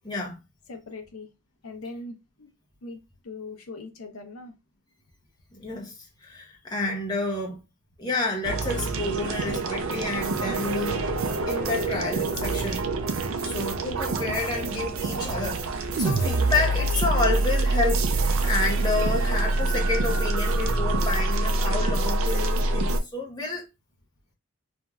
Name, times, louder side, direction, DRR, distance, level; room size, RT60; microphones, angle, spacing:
voice 1, 0.0-0.4 5.5-7.6 8.0-11.0 11.5-12.8 13.4-23.6, left 3 dB, 20° left, 0.7 m, -30 dB
voice 2, 0.7-1.3 1.6-2.5 2.8-4.5, left 3 dB, 80° left, 0.6 m, -40 dB
sound 1, 8.4-23.0, right 2 dB, 75° right, 0.4 m, -25 dB
3.0 x 2.6 x 2.3 m
head